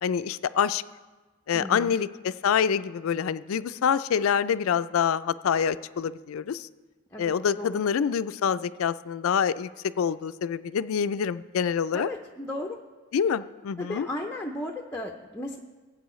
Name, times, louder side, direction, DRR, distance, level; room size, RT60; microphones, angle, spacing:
voice 1, 0.0-0.8 1.5-6.7 7.2-9.7 10.0-12.1 13.1-14.1, left 7 dB, 80° left, 14 dB, 0.4 m, -26 dB
voice 2, 1.5-1.9 7.1-7.8 11.9-12.8 13.8-15.6, left 1 dB, 10° left, 0 dB, 0.5 m, -35 dB
18.5 x 8.2 x 3.1 m, 1.3 s
head